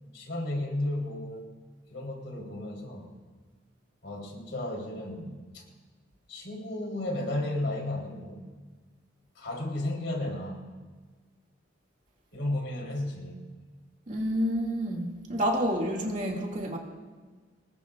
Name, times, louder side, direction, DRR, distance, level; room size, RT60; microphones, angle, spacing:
voice 1, 0.1-1.4 1.9-3.1 4.0-5.6 6.3-8.4 9.4-10.6 12.3-13.4, left 1 dB, 70° left, 0 dB, 3.8 m, -33 dB
voice 2, 14.1-16.8, equal, 40° right, -1 dB, 2.3 m, -29 dB
26.0 x 19.5 x 2.5 m, 1.4 s
head